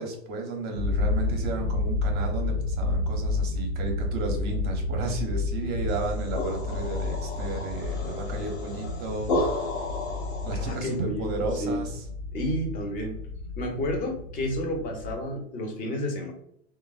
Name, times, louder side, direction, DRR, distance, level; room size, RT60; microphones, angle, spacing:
voice 1, 0.0-9.7 10.4-12.0, right 3 dB, 30° right, 2 dB, 0.6 m, -33 dB
sound 1, 0.8-15.3, left 3 dB, 90° left, 0.5 m, -31 dB
sound 2, 6.0-10.9, left 2 dB, 70° left, 0.9 m, -33 dB
voice 2, 10.5-11.8 12.3-13.2 13.6-16.3, equal, 25° left, 3 dB, 0.6 m, -31 dB
3.1 x 2.0 x 2.3 m, 0.69 s
hypercardioid pair, 105°, 34 cm